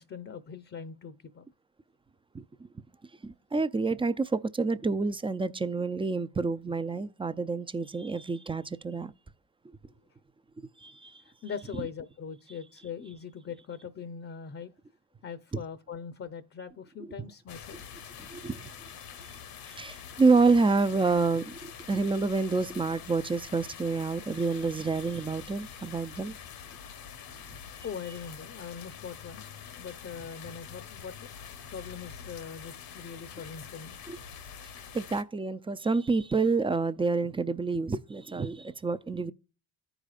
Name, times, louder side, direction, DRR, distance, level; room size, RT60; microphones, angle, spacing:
voice 1, 0.0-1.5 11.2-14.7 15.2-17.9 27.8-29.5 29.8-34.0, left 6 dB, 35° left, 0.6 m, -41 dB
voice 2, 2.3-2.7 3.2-9.1 10.8-11.2 18.2-18.7 19.2-19.3 19.7-26.4 34.1-34.2 34.9-39.3, right 4 dB, 15° right, 0.4 m, -28 dB
sound 1, 17.5-35.2, left 8 dB, 65° left, 1.0 m, -45 dB
14.0 x 5.0 x 2.4 m
supercardioid pair, 75°, 38 cm